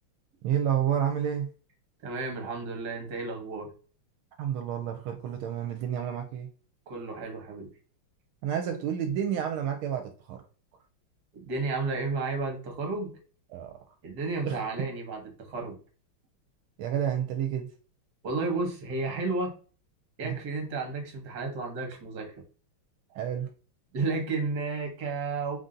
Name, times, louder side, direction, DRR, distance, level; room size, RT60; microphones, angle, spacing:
voice 1, 0.4-1.5 4.4-6.5 8.4-10.4 13.5-13.7 14.4-14.6 16.8-17.7 20.2-20.4 23.1-23.5, right 9 dB, 80° right, 1.4 m, -30 dB
voice 2, 2.0-3.7 6.9-7.7 11.3-13.2 14.0-15.8 18.2-19.5 20.2-22.4 23.9-25.6, right 3 dB, 55° right, 1.6 m, -32 dB
4.0 x 2.7 x 3.7 m
omnidirectional pair, 2.3 m